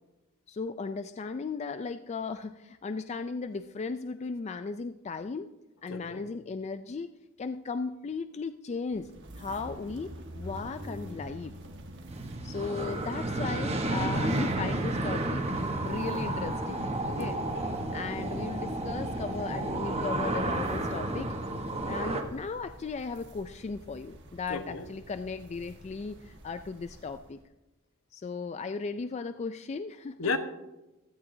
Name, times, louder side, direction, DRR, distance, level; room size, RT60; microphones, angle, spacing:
voice 1, 0.5-5.5 5.8-7.1 7.4-9.1 9.4-11.5 12.4-17.4 17.9-21.3 21.8-27.4 28.1-30.2, left 4 dB, 30° left, 10 dB, 0.3 m, -36 dB
voice 2, 5.9-6.3 17.1-17.7 24.5-24.8 30.2-30.4, left 4 dB, 70° left, 8 dB, 1.0 m, -34 dB
sound 1, 8.9-27.4, right 1 dB, 60° right, 1.5 m, -48 dB
sound 2, 12.1-22.2, right 2 dB, 30° right, 1.1 m, -31 dB
15.5 x 13.5 x 2.7 m, 1.0 s
head